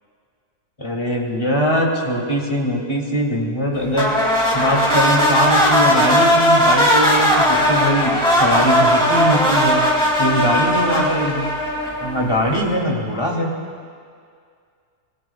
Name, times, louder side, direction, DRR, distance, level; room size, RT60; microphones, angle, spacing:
voice 1, 0.8-4.1 4.5-9.8 10.2-11.5 12.0-13.5, equal, 20° left, -2 dB, 2.8 m, -21 dB
sound 1, 3.9-12.4, equal, 5° left, 3.0 m, -17 dB
25.0 x 22.0 x 2.4 m, 2.2 s
omnidirectional pair, 1.4 m